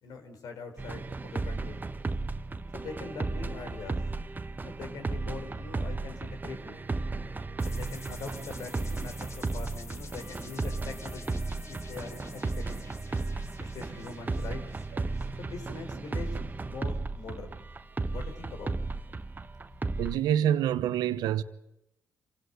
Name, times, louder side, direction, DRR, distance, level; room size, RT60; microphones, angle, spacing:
voice 1, 0.0-1.8 2.7-4.0 4.6-6.8 7.6-12.8 13.6-14.6 15.4-17.6 18.1-18.8, left 4 dB, 70° left, 4.7 m, -43 dB
sound 1, 0.8-20.2, right 3 dB, 25° right, 1.2 m, -35 dB
sound 2, 7.6-16.1, left 4 dB, 45° left, 3.4 m, -51 dB
voice 2, 20.0-21.4, right 11 dB, 85° right, 1.0 m, -26 dB
26.5 x 17.0 x 8.0 m
supercardioid pair, 60°, 7 cm